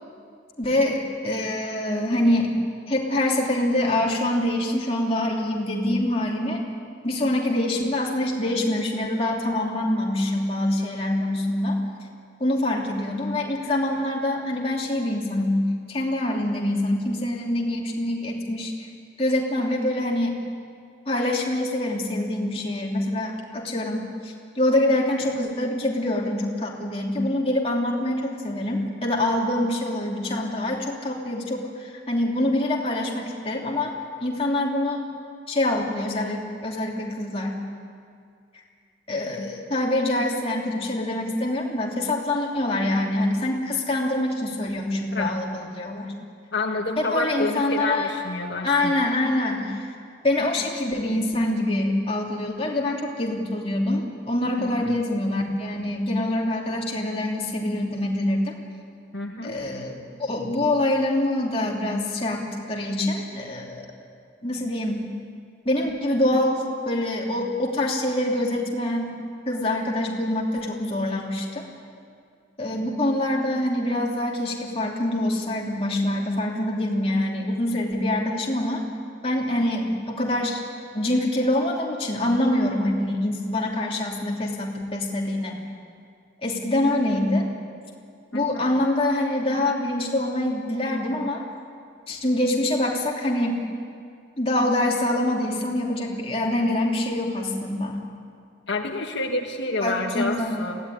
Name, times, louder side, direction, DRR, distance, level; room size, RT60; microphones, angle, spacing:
voice 1, 0.6-2.5 2.9-6.6 7.0-11.8 12.4-18.9 19.2-20.4 21.1-33.9 34.2-35.0 35.5-37.6 39.1-46.1 47.0-48.1 48.6-49.9 50.2-58.5 59.4-63.8 64.4-65.0 65.6-69.2 69.4-71.7 72.6-78.8 79.2-80.6 80.9-85.6 86.4-87.5 88.3-91.4 92.1-93.6 94.4-98.0 99.8-100.6, left 1 dB, 30° left, -2 dB, 3.0 m, -25 dB
voice 2, 46.5-48.9 54.6-54.9 59.1-59.5 88.3-88.7 98.7-100.8, left 2 dB, 75° left, 2 dB, 1.7 m, -29 dB
23.0 x 16.5 x 9.9 m, 2.3 s
head